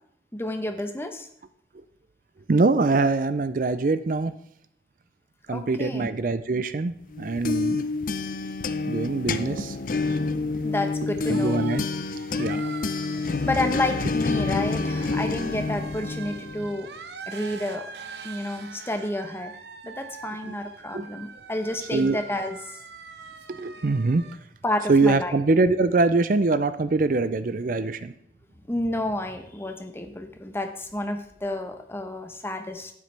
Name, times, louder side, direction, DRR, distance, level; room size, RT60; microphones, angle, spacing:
voice 1, 0.3-1.3 5.5-6.1 10.6-11.6 13.4-16.9 17.3-17.9 18.2-19.5 19.8-22.6 24.6-25.4 28.7-32.9, left 1 dB, 15° left, 6 dB, 0.9 m, -30 dB
voice 2, 2.5-4.3 5.5-7.8 8.9-9.8 10.1-10.2 11.3-11.8 12.4-12.7 20.4-20.5 20.9-21.1 21.9-22.2 23.5-24.2 24.9-28.1, right 3 dB, 50° right, 13 dB, 0.5 m, -23 dB
sound 1, 7.1-16.8, left 3 dB, 50° left, 0.5 m, -28 dB
sound 2, 8.0-24.4, right 5 dB, 75° right, 0.9 m, -44 dB
11.5 x 9.6 x 3.3 m, 0.70 s
head